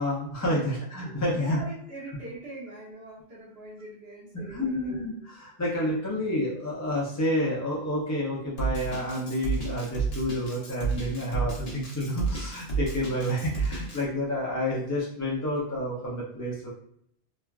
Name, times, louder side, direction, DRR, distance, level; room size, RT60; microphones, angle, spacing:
voice 1, 0.0-1.6 4.3-16.7, left 1 dB, 25° left, -5 dB, 0.4 m, -29 dB
voice 2, 1.3-5.0, right 2 dB, 70° right, -6 dB, 1.4 m, -42 dB
Drum kit, 8.6-14.0, right 4 dB, 40° left, 0.8 m, -30 dB
3.0 x 2.3 x 2.3 m, 0.70 s
omnidirectional pair, 1.1 m